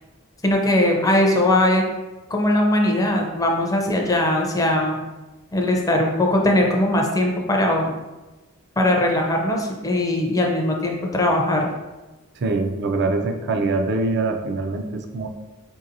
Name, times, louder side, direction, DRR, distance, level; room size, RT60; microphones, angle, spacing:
voice 1, 0.4-1.8 2.3-5.0 5.5-7.9 8.8-11.7, left 1 dB, 15° left, 1 dB, 0.5 m, -20 dB
voice 2, 12.4-15.3, right 3 dB, 50° right, 5 dB, 0.4 m, -23 dB
4.6 x 2.7 x 2.6 m, 1.1 s
head